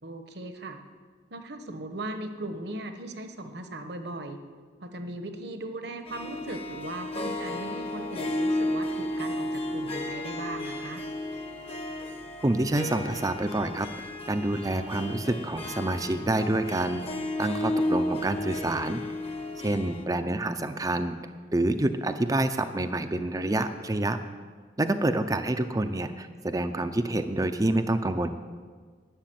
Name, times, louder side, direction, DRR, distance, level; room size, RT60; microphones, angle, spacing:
voice 1, 0.0-0.8 1.3-4.4 4.8-11.0, right 1 dB, 60° right, 7 dB, 1.1 m, -38 dB
Harp, 6.1-20.0, left 1 dB, 30° left, 1.0 m, -33 dB
voice 2, 12.4-13.9 14.3-17.0 17.4-19.0 19.6-21.2 21.5-24.2 24.8-28.3, right 1 dB, 20° right, 8 dB, 0.5 m, -27 dB
11.5 x 6.9 x 9.2 m, 1.5 s
head